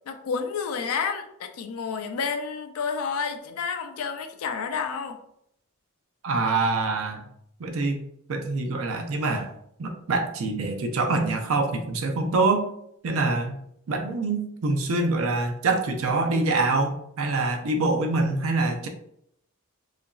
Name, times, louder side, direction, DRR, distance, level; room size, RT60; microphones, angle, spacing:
voice 1, 0.1-5.2, left 5 dB, 80° left, 7 dB, 0.4 m, -30 dB
voice 2, 6.2-7.2 7.6-8.0 8.3-9.5 9.8-12.7 13.0-13.6 13.9-18.9, right 3 dB, 70° right, 5 dB, 0.5 m, -25 dB
2.8 x 2.5 x 2.3 m, 0.72 s
head